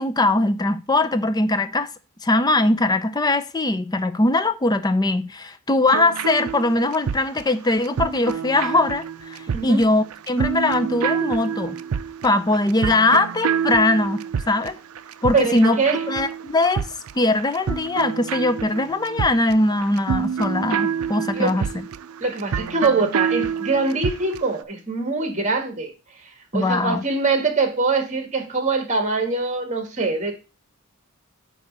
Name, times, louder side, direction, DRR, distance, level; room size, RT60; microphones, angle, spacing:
voice 1, 0.0-1.9 2.2-11.8 12.2-14.8 15.2-15.8 16.1-16.9 17.2-21.8 26.5-27.0, left 2 dB, 20° left, 0.5 m, -21 dB
sound 1, 5.9-24.5, right 7 dB, 80° right, 0.4 m, -27 dB
voice 2, 15.3-16.0 21.3-21.6 22.2-25.9 26.5-30.3, right 3 dB, 35° right, 1.8 m, -23 dB
9.1 x 3.1 x 6.6 m
head